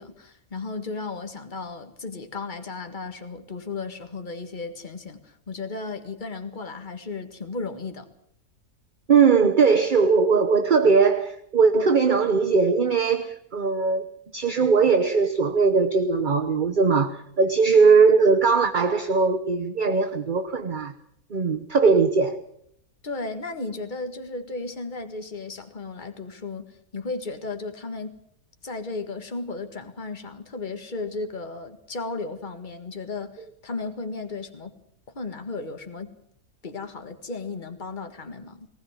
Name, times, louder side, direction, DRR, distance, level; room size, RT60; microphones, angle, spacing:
voice 1, 0.0-8.1 23.0-28.2 28.6-34.7 35.1-36.1 36.6-38.7, left 3 dB, 35° left, 1.9 m, -35 dB
voice 2, 9.1-14.1 14.3-20.9 21.3-22.4, right 5 dB, 35° right, 1.1 m, -20 dB
19.5 x 19.0 x 7.4 m
omnidirectional pair, 1.5 m